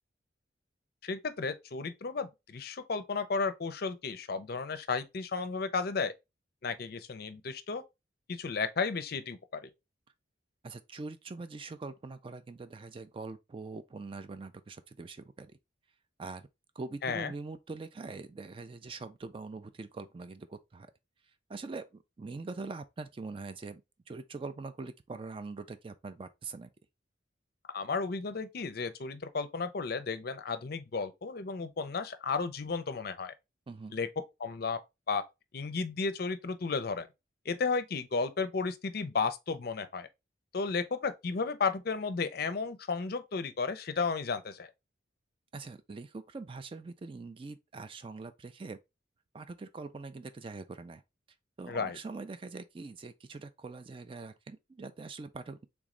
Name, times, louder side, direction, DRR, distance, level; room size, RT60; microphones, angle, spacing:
voice 1, 1.0-6.1 6.6-7.8 8.3-9.7 17.0-17.3 27.7-33.3 33.9-34.1 34.4-34.8 35.1-35.2 35.5-37.1 37.5-40.1 40.5-44.7 51.7-52.0, left 4 dB, 55° left, 0.5 m, -33 dB
voice 2, 10.6-15.6 16.2-16.5 16.8-20.9 21.5-23.8 24.1-26.7 33.7-34.0 45.5-48.8 49.3-51.0 51.6-55.7, right 3 dB, 30° right, 0.3 m, -43 dB
3.5 x 3.1 x 3.7 m
head